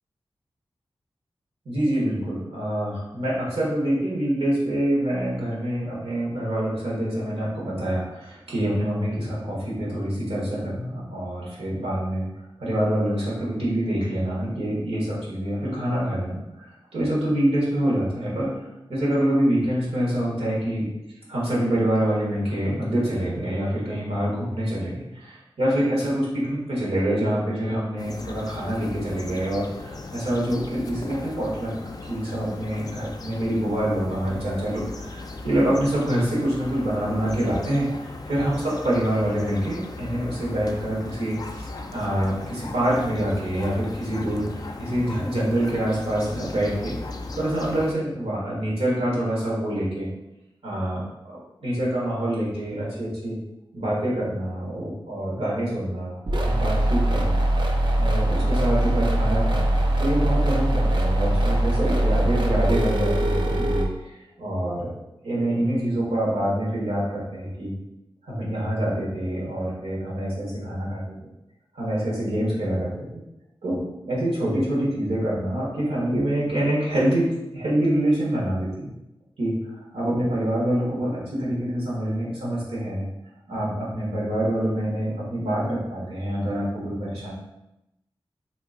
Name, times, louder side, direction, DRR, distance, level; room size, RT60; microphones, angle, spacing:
voice 1, 1.6-12.2 12.6-16.7 16.9-18.6 18.9-20.8 21.3-31.7 32.0-46.9 47.3-50.1 50.6-51.0 51.3-53.4 53.7-56.2 56.4-57.4 58.0-59.7 60.0-64.9 65.2-67.7 68.2-71.0 71.7-73.1 73.6-73.8 74.1-77.3 77.5-78.9 79.4-79.6 79.9-83.0 83.5-87.3, right 1 dB, 85° right, -6 dB, 1.3 m, -26 dB
sound 1, 28.0-47.9, left 3 dB, 40° left, 0.3 m, -37 dB
sound 2, 56.3-63.8, right 1 dB, 55° right, 0.5 m, -22 dB
2.9 x 2.4 x 3.7 m, 0.90 s
wide cardioid pair, 75°, 10 cm